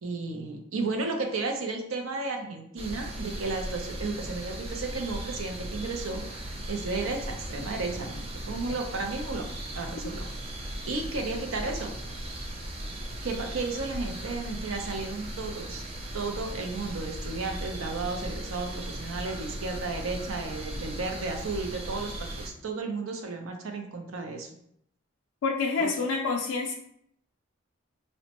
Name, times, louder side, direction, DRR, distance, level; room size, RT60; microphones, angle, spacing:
voice 1, 0.0-9.5 9.8-10.3 10.5-11.9 13.2-15.8 16.1-24.5 26.0-26.1, right 3 dB, 80° right, 3 dB, 0.6 m, -33 dB
sound 1, 2.8-22.5, right 1 dB, 30° right, 0.4 m, -37 dB
voice 2, 25.4-26.7, left 4 dB, 90° left, 0 dB, 0.3 m, -28 dB
4.1 x 2.1 x 2.9 m, 0.71 s
head